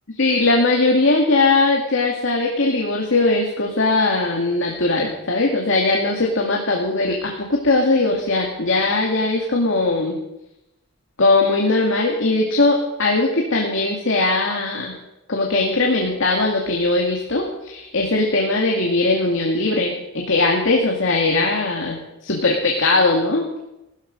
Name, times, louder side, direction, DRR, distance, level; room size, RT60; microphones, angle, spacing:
voice 1, 0.2-10.2 11.2-15.0 15.3-23.7, left 2 dB, 60° left, 0 dB, 2.2 m, -20 dB
16.0 x 13.5 x 5.3 m, 0.89 s
head